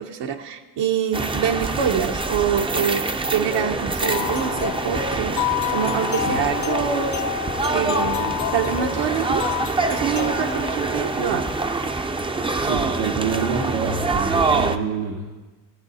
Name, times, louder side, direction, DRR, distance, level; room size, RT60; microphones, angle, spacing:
voice 1, 0.0-7.2 7.7-9.5 9.9-11.5, right 8 dB, 70° right, 4 dB, 0.9 m, -25 dB
sound 1, 1.1-14.8, right 3 dB, 10° right, 0.4 m, -25 dB
sound 2, 3.3-3.9 4.3-4.4 4.6-5.4 6.7-7.5 8.4-9.2 9.8-10.5, left 6 dB, 60° left, 1.0 m, -33 dB
sound 3, 4.0-11.9, left 13 dB, 45° left, 0.5 m, -29 dB
voice 2, 12.6-15.3, right 6 dB, 90° right, 1 dB, 1.2 m, -27 dB
16.0 x 8.4 x 4.1 m, 1.2 s
cardioid pair, 120°, 45 cm